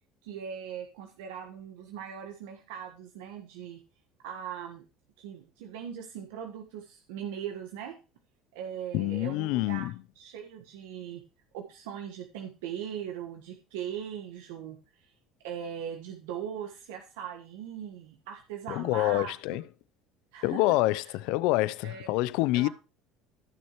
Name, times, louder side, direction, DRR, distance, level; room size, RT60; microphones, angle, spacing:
voice 1, 0.2-3.8 4.2-4.8 5.2-8.0 8.5-9.9 10.2-11.2 11.5-15.1 15.4-19.3 20.3-20.8 21.8-22.1 22.5-22.7, right 8 dB, 85° right, 1.3 m, -40 dB
voice 2, 8.9-9.9 18.7-19.6 20.4-22.7, left 18 dB, 75° left, 0.5 m, -27 dB
15.0 x 6.4 x 3.1 m
supercardioid pair, 95°, 0 cm